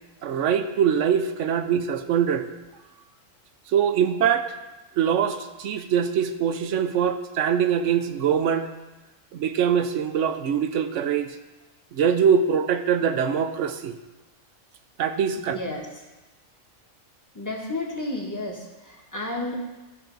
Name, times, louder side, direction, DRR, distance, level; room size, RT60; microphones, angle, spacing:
voice 1, 0.2-2.5 3.7-4.5 5.0-8.7 9.3-11.3 11.9-13.9 15.0-15.6, right 8 dB, 75° right, 9 dB, 1.0 m, -23 dB
voice 2, 15.4-16.0 17.3-19.6, left 2 dB, 15° left, -1 dB, 1.2 m, -32 dB
13.5 x 5.9 x 3.9 m, 1.1 s
omnidirectional pair, 1.3 m